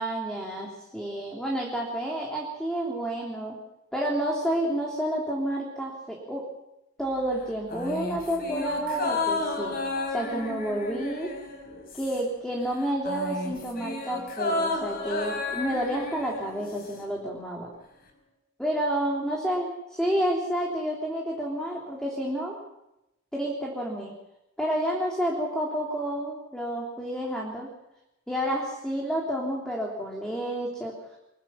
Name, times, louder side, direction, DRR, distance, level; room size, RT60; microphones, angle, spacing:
voice 1, 0.0-3.6 3.9-6.4 7.0-9.8 10.1-11.3 11.9-17.7 18.6-22.6 23.3-24.1 24.6-27.7 28.3-30.9, right 1 dB, 5° left, -2 dB, 3.4 m, -30 dB
sound 1, 7.7-12.5 12.7-17.1 17.3-17.4, left 2 dB, 45° left, 5.1 m, -32 dB
25.0 x 22.5 x 5.8 m, 0.91 s
head